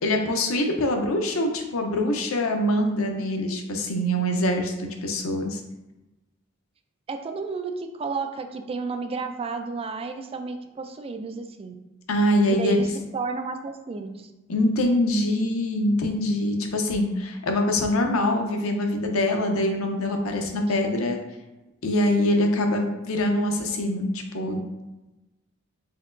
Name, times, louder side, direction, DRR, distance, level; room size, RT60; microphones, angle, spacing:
voice 1, 0.0-5.6 12.1-12.9 14.5-21.2 21.8-24.6, left 1 dB, 90° left, 3 dB, 0.7 m, -24 dB
voice 2, 7.1-11.7 12.5-12.9 13.1-14.3, right 4 dB, 30° right, 6 dB, 0.3 m, -32 dB
4.3 x 3.7 x 2.5 m, 1.0 s
head